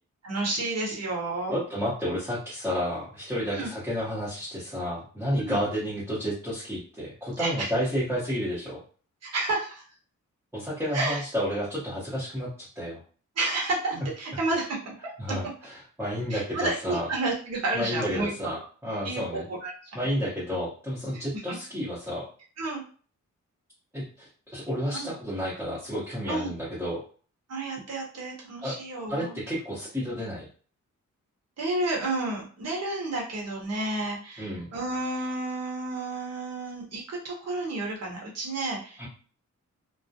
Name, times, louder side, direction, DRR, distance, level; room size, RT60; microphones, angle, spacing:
voice 1, 0.2-1.6 3.5-3.7 5.4-5.6 7.4-7.7 9.2-9.8 10.9-11.2 13.4-15.4 16.3-18.3 19.0-19.7 22.6-22.8 24.9-25.1 26.3-26.5 27.5-29.4 31.6-39.1, right 2 dB, 55° right, -2 dB, 0.9 m, -31 dB
voice 2, 1.5-8.8 10.5-13.0 13.9-14.1 15.2-17.1 17.7-19.5 19.9-22.3 23.9-27.0 28.6-28.7 29.1-30.4 34.4-34.7 39.0-39.1, equal, 10° right, -10 dB, 0.7 m, -31 dB
2.3 x 2.0 x 2.6 m, 0.41 s
wide cardioid pair, 140°, 30 cm